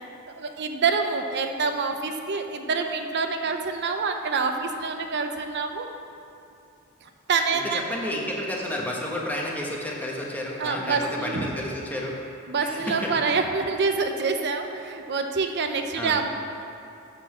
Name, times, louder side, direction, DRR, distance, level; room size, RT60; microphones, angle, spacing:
voice 1, 0.4-5.9 7.0-7.9 10.6-11.5 12.5-16.3, right 4 dB, 55° right, 5 dB, 0.7 m, -26 dB
voice 2, 7.7-12.1 12.6-13.3 15.9-16.2, left 1 dB, 10° left, -3 dB, 1.3 m, -31 dB
12.0 x 4.2 x 7.2 m, 2.7 s
head